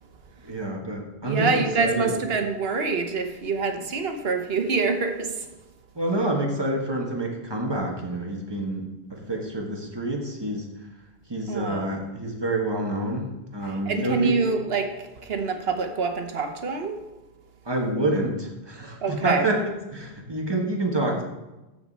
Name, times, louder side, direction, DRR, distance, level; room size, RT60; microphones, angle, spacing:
voice 1, 0.4-1.5 1.8-2.1 5.9-8.8 9.1-10.7 11.3-14.4 17.6-19.6 19.9-21.2, right 1 dB, 25° right, 0 dB, 1.5 m, -27 dB
voice 2, 1.2-5.5 11.5-11.9 13.7-17.0 19.0-19.5, right 4 dB, 75° right, 6 dB, 1.2 m, -26 dB
13.5 x 5.1 x 4.1 m, 1.0 s
omnidirectional pair, 1.0 m